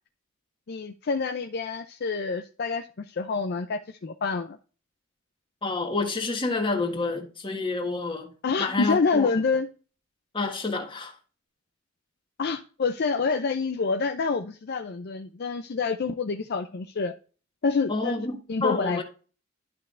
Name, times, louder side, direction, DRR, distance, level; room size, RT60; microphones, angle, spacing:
voice 1, 0.7-4.6 8.4-9.7 12.4-17.1 17.6-18.2 18.5-19.0, left 4 dB, 50° left, 0.5 m, -27 dB
voice 2, 5.6-8.3 8.6-9.3 10.3-11.1 17.9-19.0, left 3 dB, 25° left, 1.5 m, -28 dB
11.5 x 5.4 x 2.5 m
head